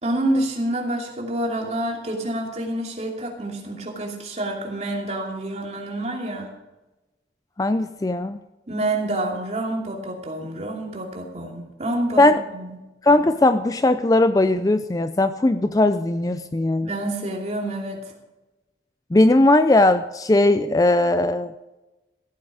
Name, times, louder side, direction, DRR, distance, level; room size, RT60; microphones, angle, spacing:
voice 1, 0.0-6.5 8.7-12.8 16.8-18.0, right 1 dB, 35° right, 0 dB, 2.7 m, -28 dB
voice 2, 7.6-8.4 12.2-12.4 13.0-16.9 19.1-21.5, left 2 dB, 20° left, 11 dB, 0.4 m, -18 dB
15.0 x 9.4 x 4.8 m, 1.1 s
head